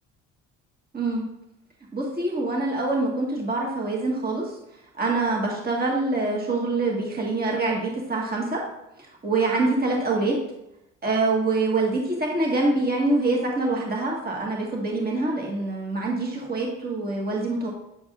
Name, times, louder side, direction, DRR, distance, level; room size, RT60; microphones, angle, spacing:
voice 1, 0.9-1.3 1.9-4.5 4.9-8.6 9.0-10.4 11.0-17.7, right 2 dB, 30° right, -2 dB, 1.8 m, -25 dB
8.1 x 4.7 x 2.6 m, 0.86 s
hypercardioid pair, 65°, 32 cm